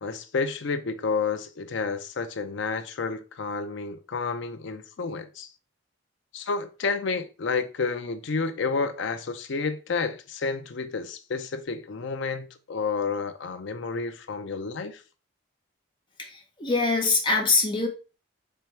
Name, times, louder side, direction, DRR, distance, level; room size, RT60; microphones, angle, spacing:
voice 1, 0.0-5.5 6.3-15.0, left 4 dB, 60° left, 0.5 m, -30 dB
voice 2, 16.2-17.9, left 3 dB, 25° left, 0.9 m, -24 dB
4.5 x 3.4 x 3.3 m
head